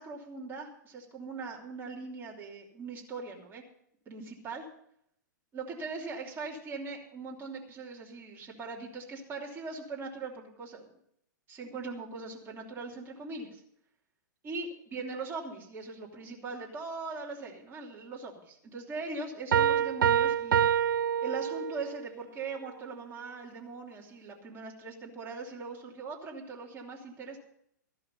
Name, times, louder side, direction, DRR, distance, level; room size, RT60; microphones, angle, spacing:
voice 1, 0.0-3.6 4.1-4.7 5.5-10.9 11.5-13.6 14.4-20.6 21.2-27.4, right 4 dB, 20° right, -2 dB, 3.1 m, -40 dB
Piano, 19.5-22.0, right 9 dB, 85° right, 0.6 m, -26 dB
14.0 x 11.5 x 5.3 m, 0.71 s
hypercardioid pair, 130°, 11 cm